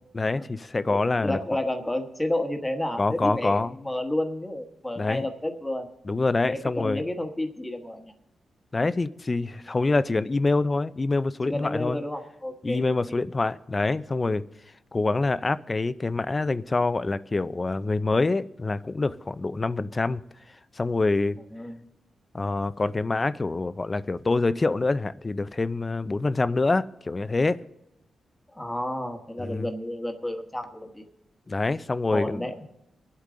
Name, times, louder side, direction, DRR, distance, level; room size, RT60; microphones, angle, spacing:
voice 1, 0.1-1.4 3.0-3.8 5.0-5.3 6.1-7.0 8.7-12.0 12.6-14.4 14.9-20.2 20.8-21.4 22.3-27.6 29.4-29.7 31.5-32.5, left 3 dB, 25° left, 14 dB, 0.5 m, -26 dB
voice 2, 0.9-5.9 6.4-8.1 11.4-12.8 21.5-21.8 28.5-31.0 32.1-32.7, left 1 dB, 10° left, 5 dB, 1.2 m, -31 dB
24.5 x 8.3 x 3.8 m, 0.89 s
cardioid pair, 110°, 0 cm